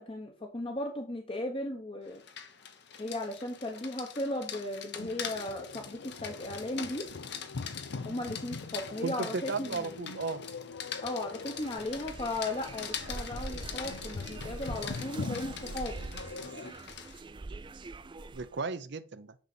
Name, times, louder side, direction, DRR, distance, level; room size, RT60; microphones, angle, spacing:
voice 1, 0.0-2.2 3.0-7.1 8.0-9.8 11.0-15.9, left 1 dB, 30° left, 1.0 m, -36 dB
Rain, 2.1-17.2, left 7 dB, 60° left, 1.2 m, -44 dB
sound 1, 5.0-16.7, left 4 dB, 85° left, 0.6 m, -43 dB
voice 2, 9.0-10.4 14.9-15.0 18.3-19.3, right 4 dB, 60° right, 0.6 m, -35 dB
sound 2, 11.4-18.6, right 3 dB, 25° right, 0.4 m, -44 dB
9.7 x 4.0 x 5.9 m
head